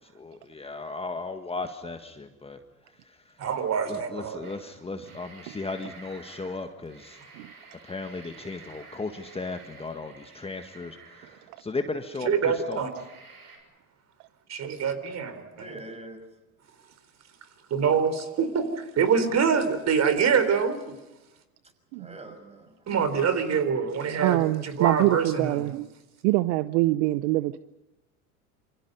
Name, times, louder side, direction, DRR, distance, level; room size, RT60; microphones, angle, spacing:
voice 1, 0.0-3.5 3.8-7.2 7.8-12.9, left 3 dB, 15° left, 1.7 m, -36 dB
voice 2, 3.4-4.4 12.2-12.9 14.5-15.7 17.7-21.0 22.9-25.6, right 6 dB, 35° right, 4.2 m, -25 dB
sound 1, 4.4-4.6 4.9-11.8 12.3-12.4 12.9-13.6, right 4 dB, 85° right, 6.5 m, -50 dB
voice 3, 15.2-16.2 22.0-22.8, right 1 dB, 15° right, 6.1 m, -45 dB
voice 4, 24.2-25.9 26.2-27.6, right 19 dB, 55° right, 0.9 m, -24 dB
28.0 x 25.5 x 5.5 m
hypercardioid pair, 80°, 43 cm